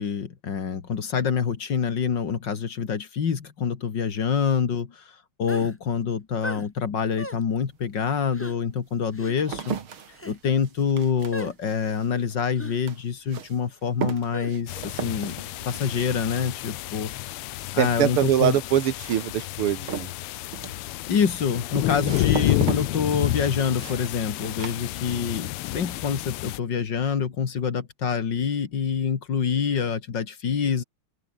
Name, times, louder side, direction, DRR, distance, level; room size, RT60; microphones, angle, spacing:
voice 1, 0.0-5.0 5.4-9.8 10.2-15.3 15.6-17.4 17.7-18.6 21.1-30.8, left 6 dB, 55° left, 2.5 m, -26 dB
sound 1, 5.5-5.7 6.4-6.7 7.2-7.4 8.3-8.5 9.1-9.3 10.1-10.4 11.3-11.5 12.6-12.8 14.3-14.5, left 1 dB, 5° left, 3.5 m, -37 dB
sound 2, 7.5-7.6 8.3-25.5 25.8-26.4, right 7 dB, 70° right, 2.9 m, -38 dB
sound 3, 14.7-26.6, left 18 dB, 85° left, 1.5 m, -30 dB
voice 2, 17.8-20.1, right 11 dB, 90° right, 2.2 m, -23 dB
open air
omnidirectional pair, 2.4 m